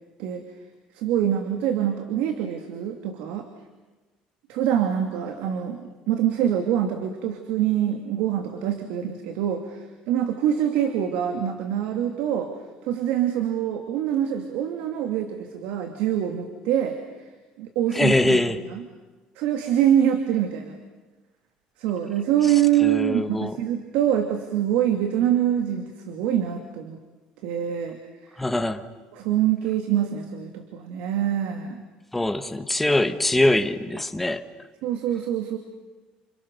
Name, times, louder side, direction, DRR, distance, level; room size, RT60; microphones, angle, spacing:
voice 1, 0.9-3.4 4.5-12.5 12.8-17.0 17.6-18.8 19.4-20.8 21.8-27.0 27.4-28.0 28.3-28.4 29.1-31.8 34.8-35.6, right 10 dB, 80° right, 5 dB, 2.6 m, -25 dB
voice 2, 17.9-18.6 22.8-23.5 28.4-28.8 32.1-34.4, left 1 dB, 5° left, 8 dB, 1.3 m, -22 dB
29.5 x 28.5 x 6.8 m, 1.2 s
cardioid pair, 170°, 3 cm